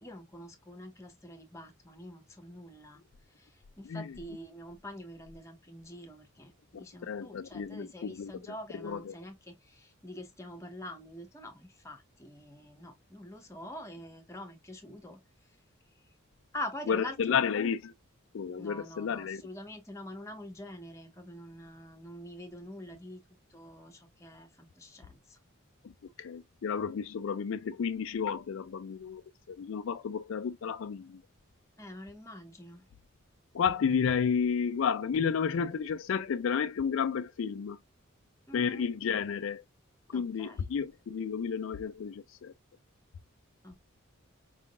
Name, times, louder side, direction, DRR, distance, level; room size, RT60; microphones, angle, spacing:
voice 1, 0.0-3.0 3.4-3.5 3.8-15.2 16.5-17.5 18.6-23.2 23.5-25.4 31.8-32.8 38.5-38.9 40.1-40.6 43.6-43.8, left 1 dB, 15° left, 1.1 m, -45 dB
voice 2, 7.1-8.3 8.8-9.1 16.9-17.9 18.3-19.4 26.2-29.2 29.5-31.2 33.5-37.8 38.5-39.6 40.1-42.5, left 6 dB, 65° left, 0.4 m, -31 dB
4.9 x 3.6 x 2.3 m
head